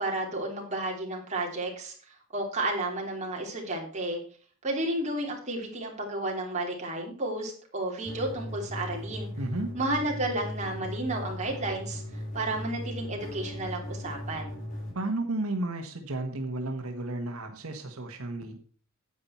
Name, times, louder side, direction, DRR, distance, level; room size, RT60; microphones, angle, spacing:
voice 1, 0.0-4.2 4.6-9.3 9.7-14.6, right 2 dB, 35° right, 0 dB, 3.2 m, -32 dB
sound 1, 8.0-14.9, left 1 dB, 35° left, 4.9 m, -38 dB
voice 2, 9.4-9.7 14.9-18.6, right 2 dB, 80° right, 5 dB, 1.4 m, -33 dB
9.7 x 8.8 x 4.4 m, 0.43 s
head